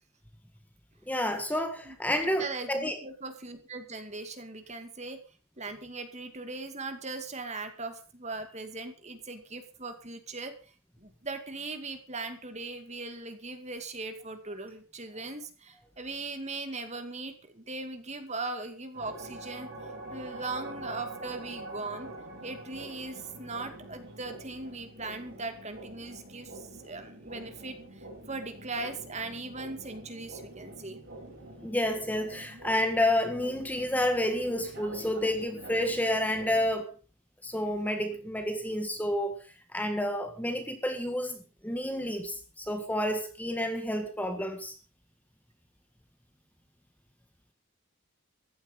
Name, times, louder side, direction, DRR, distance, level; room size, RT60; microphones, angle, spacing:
voice 1, 1.1-3.0 31.6-36.9 37.4-39.4 39.7-44.7, left 1 dB, 5° left, 1.7 m, -30 dB
voice 2, 1.9-5.2 5.6-10.5 11.0-19.7 20.1-22.1 22.4-27.8 28.3-31.0, right 3 dB, 30° right, 2.3 m, -39 dB
sound 1, 18.9-36.7, right 1 dB, 50° right, 7.5 m, -45 dB
15.0 x 12.0 x 5.4 m
head